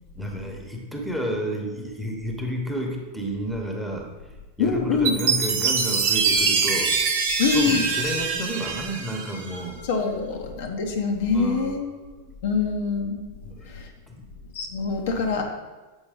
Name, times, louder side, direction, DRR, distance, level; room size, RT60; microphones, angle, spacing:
voice 1, 0.1-4.1 4.6-6.9 7.4-9.8 11.3-12.4 13.4-13.7 14.1-14.2 15.2-15.4, right 1 dB, ahead, 1 dB, 1.0 m, -31 dB
voice 2, 4.6-5.2 7.4-7.8 9.8-11.9 12.4-13.2 13.7-13.9 14.5-15.4, left 5 dB, 55° left, 3 dB, 0.7 m, -24 dB
Chime, 5.0-9.7, right 5 dB, 50° right, 0.8 m, -24 dB
7.0 x 4.8 x 3.7 m, 1.2 s
figure-of-eight pair, 90°, 0 cm